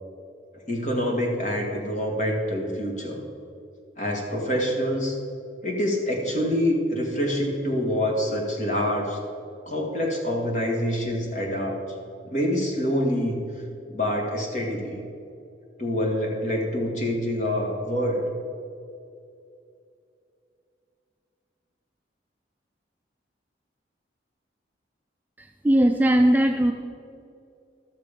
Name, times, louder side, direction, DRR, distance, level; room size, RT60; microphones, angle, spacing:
voice 1, 0.7-3.2 4.0-5.2 5.6-9.2 9.7-11.8 12.2-13.4 13.9-15.0 15.8-18.3, equal, 40° left, 0 dB, 1.8 m, -26 dB
voice 2, 25.4-26.7, right 1 dB, 10° right, 3 dB, 0.4 m, -19 dB
13.0 x 6.6 x 5.2 m, 2.6 s
head